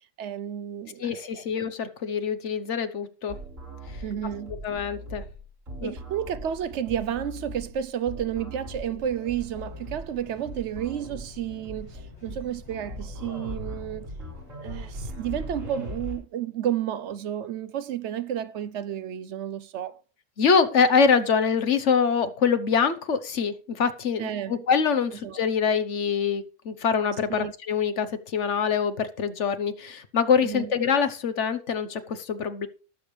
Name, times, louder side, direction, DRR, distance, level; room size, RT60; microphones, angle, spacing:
voice 1, 0.2-1.1 1.3-1.4 4.0-4.6 5.8-14.1 14.5-20.0 24.2-24.6 25.2-25.4 27.3-27.5 30.4-30.7, right 10 dB, 70° right, 0.9 m, -31 dB
voice 2, 1.0-3.4 4.6-5.2 5.8-5.9 20.4-32.7, left 6 dB, 70° left, 1.3 m, -24 dB
sound 1, 3.3-16.2, equal, 85° right, 5.4 m, -39 dB
sound 2, 9.0-16.0, left 2 dB, 25° left, 2.9 m, -51 dB
19.0 x 7.1 x 3.3 m
omnidirectional pair, 1.3 m